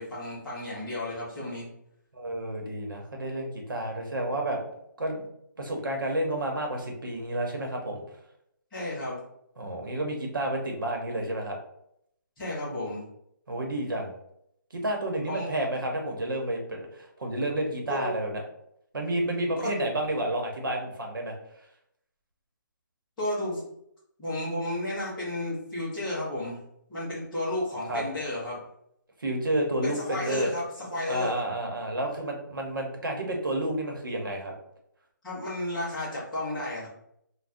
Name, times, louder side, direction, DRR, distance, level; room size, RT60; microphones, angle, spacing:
voice 1, 0.0-1.7 8.7-9.2 12.4-13.0 15.3-15.5 17.9-18.1 19.6-19.7 23.2-23.6 24.2-26.6 26.9-28.6 29.8-31.3 35.2-36.9, left 1 dB, ahead, -17 dB, 0.4 m, -32 dB
voice 2, 2.1-4.6 5.0-5.2 5.6-8.0 9.6-11.6 13.5-14.1 14.7-18.4 18.9-21.3 27.9-28.0 29.2-30.5 31.1-34.5, right 1 dB, 80° right, 1 dB, 0.9 m, -30 dB
2.6 x 2.2 x 3.5 m, 0.75 s
hypercardioid pair, 175°, 11 cm